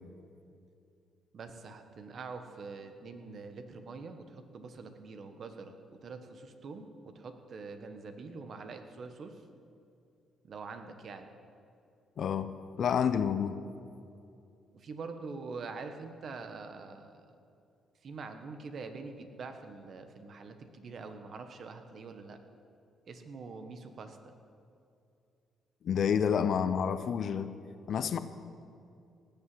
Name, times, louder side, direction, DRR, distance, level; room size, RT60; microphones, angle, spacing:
voice 1, 1.3-5.8 6.0-9.4 10.4-11.3 14.7-17.3 18.0-22.4 23.1-24.3, right 4 dB, 55° right, 7 dB, 1.4 m, -44 dB
voice 2, 12.2-12.5 12.8-13.6 25.8-27.5 27.9-28.2, left 7 dB, 60° left, 12 dB, 0.7 m, -29 dB
18.5 x 7.0 x 7.9 m, 2.5 s
cardioid pair, 90°, 0 cm